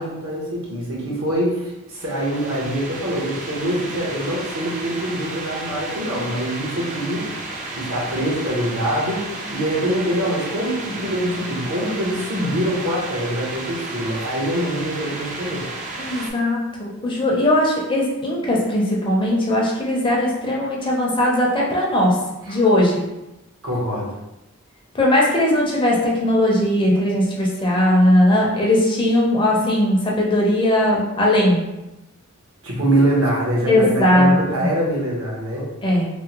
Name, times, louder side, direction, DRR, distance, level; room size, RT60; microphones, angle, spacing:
voice 1, 0.0-7.3 7.8-15.7 22.5-22.6 23.6-24.1 32.6-35.7, right 1 dB, 70° right, -3 dB, 0.9 m, -24 dB
sound 1, 1.9-16.3, right 2 dB, 35° right, 0.4 m, -33 dB
voice 2, 16.0-22.2 22.5-23.0 24.9-31.6 33.7-34.7 35.8-36.1, left 1 dB, 25° left, -2 dB, 0.5 m, -19 dB
3.4 x 2.1 x 2.9 m, 0.96 s
head